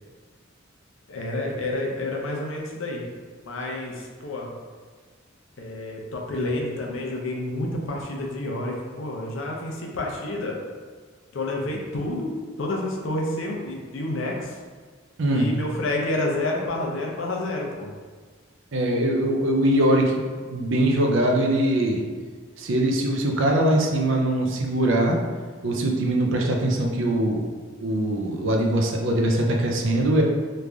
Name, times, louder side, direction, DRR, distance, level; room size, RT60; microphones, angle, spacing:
voice 1, 1.1-3.1 3.5-4.5 5.6-10.6 11.3-14.5 15.3-17.9, left 1 dB, 70° left, 0 dB, 0.6 m, -29 dB
voice 2, 18.7-20.2 20.5-22.0 22.6-25.2 25.6-27.4 27.8-30.2, right 1 dB, 65° right, 1 dB, 0.5 m, -22 dB
3.2 x 2.5 x 3.4 m, 1.5 s
head